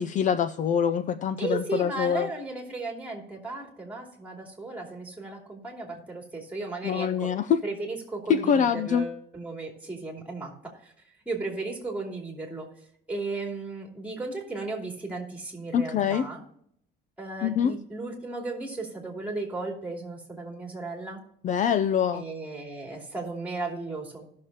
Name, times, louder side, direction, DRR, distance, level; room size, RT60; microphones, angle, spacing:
voice 1, 0.0-2.3 6.8-7.6 8.3-9.1 15.7-16.3 17.4-17.8 21.4-22.2, left 8 dB, 45° left, 12 dB, 0.5 m, -24 dB
voice 2, 1.4-7.3 7.6-10.9 11.3-12.7 13.1-16.4 17.2-21.2 22.1-24.3, right 3 dB, 10° right, 0 dB, 2.8 m, -35 dB
17.0 x 6.5 x 2.8 m, 0.69 s
cardioid pair, 140°, 17 cm